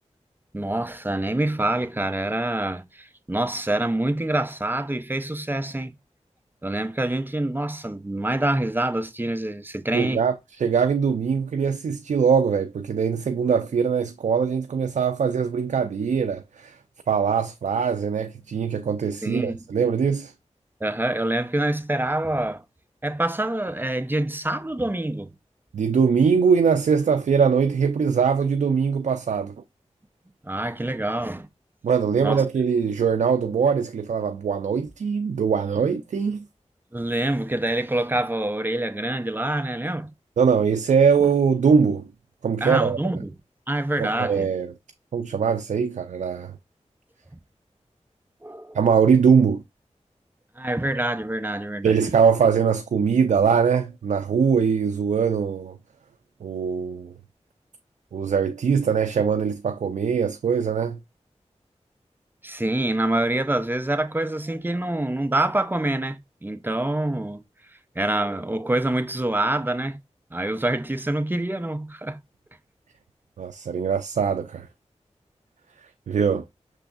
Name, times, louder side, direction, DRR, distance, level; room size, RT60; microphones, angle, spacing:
voice 1, 0.5-5.9 6.6-10.2 19.2-19.6 20.8-22.6 23.0-25.3 30.4-31.5 32.2-32.4 36.9-40.1 42.6-43.3 43.7-44.5 47.3-47.4 48.4-48.8 50.6-52.0 62.4-67.4 68.0-70.0 70.3-72.2, right 1 dB, 15° right, 0.6 m, -26 dB
voice 2, 9.9-16.8 17.1-20.3 25.7-29.5 31.8-36.4 40.4-42.1 42.4-43.0 44.0-44.7 45.1-46.5 48.7-49.6 51.8-55.8 56.4-57.1 58.1-61.0 73.4-74.7 76.1-76.4, right 6 dB, 85° right, 0.4 m, -22 dB
6.1 x 3.3 x 2.3 m
wide cardioid pair, 50°, 12 cm